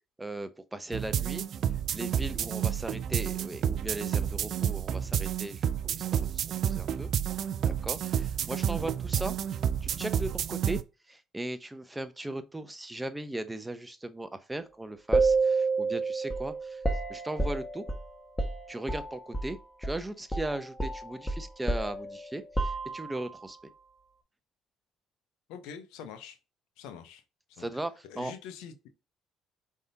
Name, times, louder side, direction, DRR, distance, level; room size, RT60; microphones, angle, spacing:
voice 1, 0.2-1.4 1.9-6.3 6.6-7.1 7.6-9.3 9.8-10.8 11.1-16.8 17.1-17.8 18.7-23.6 27.6-28.3, right 1 dB, 15° right, 0.8 m, -38 dB
sound 1, 0.9-10.8, right 9 dB, 60° right, 0.4 m, -30 dB
sound 2, 15.1-19.6 19.8-20.0 20.3-23.3, right 3 dB, 10° left, 1.4 m, -30 dB
voice 2, 25.5-26.4 26.8-27.2 27.5-27.7 28.0-28.9, left 7 dB, 80° left, 0.8 m, -44 dB
5.3 x 3.6 x 2.8 m
supercardioid pair, 65°, 0 cm